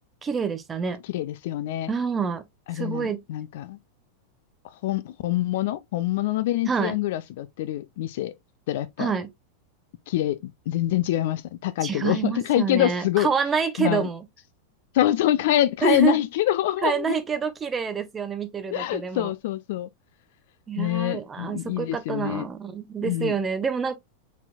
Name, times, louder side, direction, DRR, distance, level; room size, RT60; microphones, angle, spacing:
voice 1, 0.2-1.0 1.9-2.4 2.7-3.2 6.7-7.0 9.0-9.3 11.8-14.2 15.8-16.2 16.8-19.3 20.7-24.0, right 6 dB, 20° right, 0.8 m, -27 dB
voice 2, 1.1-1.9 2.7-3.8 4.8-8.3 8.7-9.1 10.1-13.3 13.8-14.1 14.9-17.2 18.7-19.9 20.8-22.5 23.0-23.3, left 13 dB, 55° left, 0.4 m, -25 dB
4.2 x 4.2 x 2.3 m
figure-of-eight pair, 90°, 0 cm